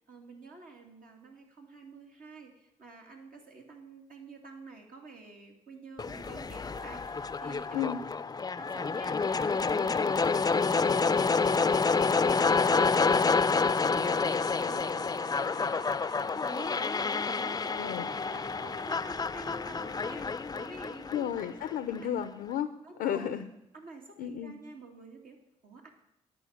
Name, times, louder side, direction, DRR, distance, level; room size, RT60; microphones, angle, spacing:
voice 1, 0.1-7.9 8.6-10.4 12.1-21.5 22.0-22.1 22.8-23.4 23.7-25.9, right 3 dB, 65° right, 1 dB, 2.4 m, -49 dB
sound 1, 6.0-22.0, left 4 dB, 25° left, 0.5 m, -28 dB
voice 2, 17.8-18.1 21.1-22.7 23.0-23.5 24.2-24.5, left 10 dB, 80° left, 11 dB, 0.6 m, -32 dB
10.5 x 5.4 x 8.5 m, 0.82 s
hypercardioid pair, 45°, 16 cm